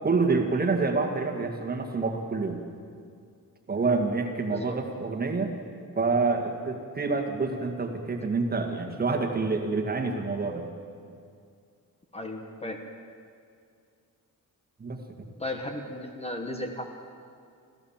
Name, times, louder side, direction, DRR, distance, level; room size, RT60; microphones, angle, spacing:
voice 1, 0.0-2.6 3.7-5.5 6.0-10.6 14.8-15.3, right 4 dB, 25° right, 3 dB, 1.9 m, -27 dB
voice 2, 12.1-12.8 15.4-16.9, left 1 dB, 20° left, 4 dB, 1.2 m, -35 dB
26.0 x 15.0 x 7.4 m, 2.3 s
wide cardioid pair, 165°, 34 cm